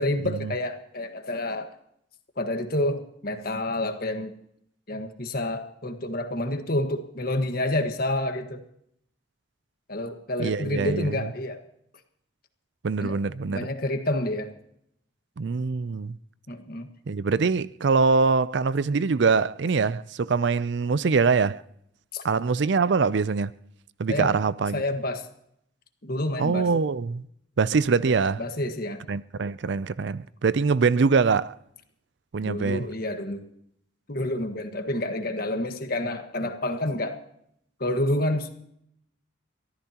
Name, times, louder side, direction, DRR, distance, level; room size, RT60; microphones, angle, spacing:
voice 1, 0.0-1.7 2.4-4.3 4.9-8.6 9.9-11.6 13.0-13.2 13.5-14.5 16.5-16.9 22.1-22.2 24.1-24.3 24.7-25.3 26.0-26.7 28.4-29.0 32.4-33.4 34.1-37.2 37.8-38.5, left 1 dB, 50° left, 1.5 m, -28 dB
voice 2, 10.4-11.3 12.8-13.7 15.4-16.2 17.1-21.6 22.2-23.5 24.0-24.8 26.4-27.2 27.6-28.4 29.1-31.5 32.3-32.9, right 4 dB, 60° right, 0.4 m, -23 dB
23.5 x 14.5 x 2.9 m
head